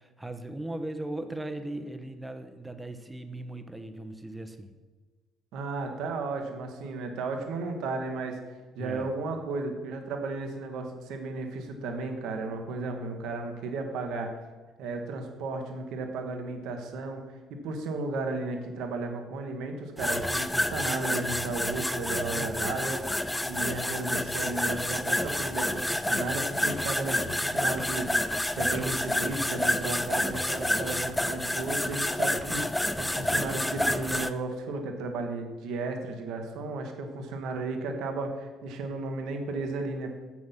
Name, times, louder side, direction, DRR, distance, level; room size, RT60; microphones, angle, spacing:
voice 1, 0.0-4.7 8.8-9.1 22.1-22.8, right 1 dB, 10° right, 9 dB, 0.9 m, -38 dB
voice 2, 5.5-8.4 8.7-14.3 14.8-23.2 23.4-40.2, right 3 dB, 60° right, 4 dB, 1.2 m, -34 dB
sound 1, 20.0-34.3, left 1 dB, 5° left, 0.5 m, -29 dB
7.6 x 6.0 x 5.7 m, 1.3 s
figure-of-eight pair, 50°, 0 cm